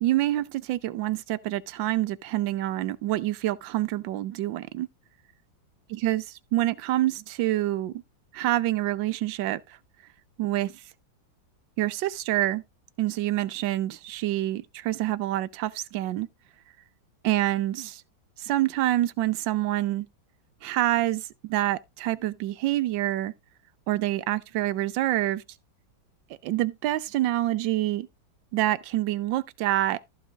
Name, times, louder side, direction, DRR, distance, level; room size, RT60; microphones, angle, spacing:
voice 1, 0.0-4.9 5.9-6.2 6.5-7.9 8.3-9.6 10.4-10.7 11.8-12.6 13.0-16.3 17.2-18.0 18.4-20.1 20.6-23.3 23.9-25.4 26.4-28.1 28.5-30.0, right 15 dB, 75° right, 1.4 m, -26 dB
14.5 x 5.1 x 3.5 m
omnidirectional pair, 2.1 m